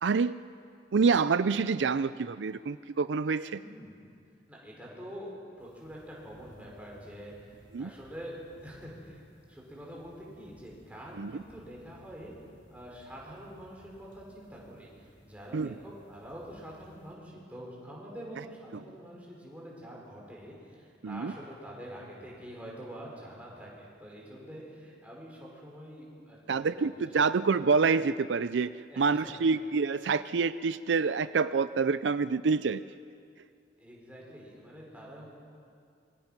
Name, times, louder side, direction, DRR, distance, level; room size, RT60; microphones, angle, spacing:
voice 1, 0.0-0.3 0.9-3.6 7.7-7.9 11.2-11.3 15.5-15.7 21.0-21.3 26.5-28.7 29.0-32.8, right 5 dB, 80° right, 14 dB, 0.5 m, -27 dB
voice 2, 3.5-4.0 4.5-7.3 7.8-9.2 9.5-12.3 12.7-26.8 27.1-27.2 28.9-29.5 33.8-35.4, equal, 10° right, -4 dB, 5.7 m, -46 dB
sound 1, 5.6-17.2, equal, 70° left, 4.5 m, -60 dB
27.0 x 24.5 x 6.0 m, 2.4 s
head